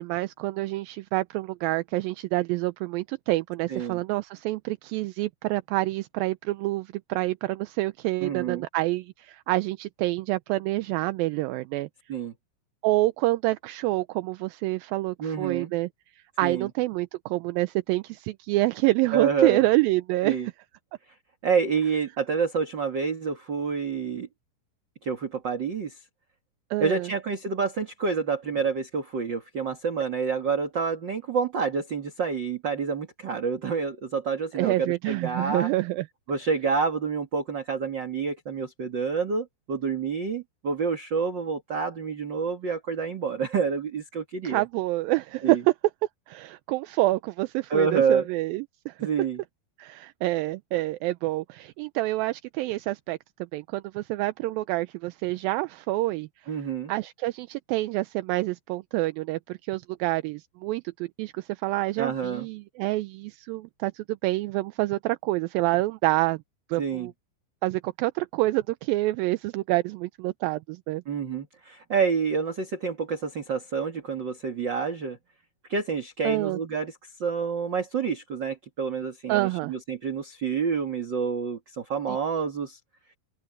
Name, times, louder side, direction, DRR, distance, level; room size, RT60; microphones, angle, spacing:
voice 1, 0.0-11.9 12.8-15.9 16.4-20.5 26.7-27.1 34.5-36.1 44.4-45.7 46.3-49.1 49.8-53.2 53.5-56.5 56.9-66.4 66.7-67.1 67.6-71.0 76.2-76.6 79.3-79.7, right 19 dB, 80° right, 2.3 m, -27 dB
voice 2, 3.7-4.0 8.2-8.7 12.1-12.3 15.2-15.7 16.4-16.7 19.1-19.6 20.2-20.5 21.4-24.3 25.0-26.0 26.8-35.7 36.3-44.6 45.4-45.6 47.7-48.3 49.0-49.4 56.5-56.9 62.0-62.5 66.8-67.1 71.1-75.2 75.7-82.8, right 5 dB, 40° right, 1.9 m, -28 dB
open air
omnidirectional pair, 4.4 m